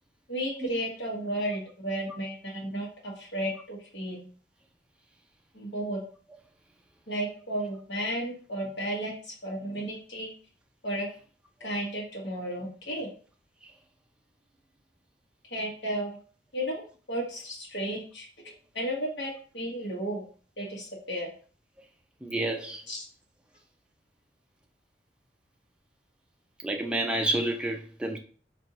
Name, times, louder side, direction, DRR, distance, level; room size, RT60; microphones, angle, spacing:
voice 1, 0.3-4.3 5.5-6.0 7.1-10.3 10.8-11.1 11.6-13.1 15.5-16.1 16.5-18.3 18.7-20.2 20.6-21.3 22.9-23.0, right 1 dB, 75° left, 1.4 m, -33 dB
voice 2, 22.2-22.8 26.6-28.2, right 1 dB, 5° right, 0.4 m, -29 dB
4.1 x 2.7 x 2.9 m
head